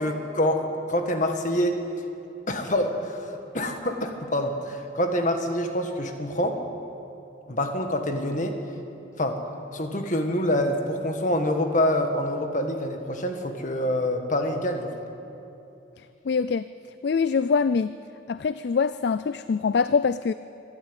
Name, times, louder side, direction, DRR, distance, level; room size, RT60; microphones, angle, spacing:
voice 1, 0.0-1.8 2.5-6.6 7.5-8.6 9.2-9.4 9.7-14.9, left 1 dB, 40° left, 5 dB, 1.8 m, -26 dB
voice 2, 16.2-16.7 17.0-17.9 18.3-20.3, left 5 dB, 55° left, 14 dB, 0.4 m, -24 dB
25.0 x 12.0 x 9.1 m, 2.8 s
head